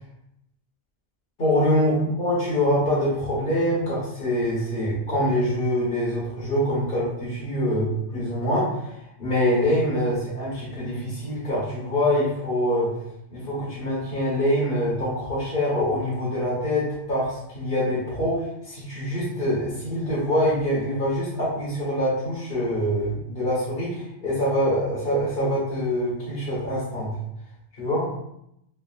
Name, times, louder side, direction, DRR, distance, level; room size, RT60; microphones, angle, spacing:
voice 1, 1.4-1.9 2.2-12.9 13.3-27.1 27.8-28.1, equal, 50° left, -8 dB, 0.9 m, -25 dB
3.1 x 2.3 x 2.3 m, 0.78 s
omnidirectional pair, 1.4 m